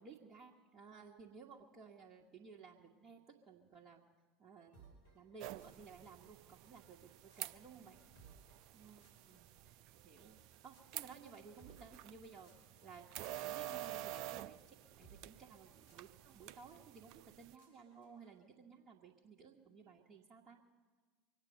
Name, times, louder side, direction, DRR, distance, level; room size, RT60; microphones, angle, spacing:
voice 1, 0.0-4.0 4.4-4.9 5.1-8.0 8.7-9.4 10.0-13.1 13.4-20.6, right 5 dB, 30° right, -3 dB, 1.5 m, -57 dB
sound 1, 4.7-18.4, right 4 dB, 75° left, 4.0 m, -68 dB
sound 2, 5.4-17.6, right 13 dB, 55° right, 0.4 m, -50 dB
23.5 x 8.9 x 6.6 m, 1.4 s
figure-of-eight pair, 70°, 0 cm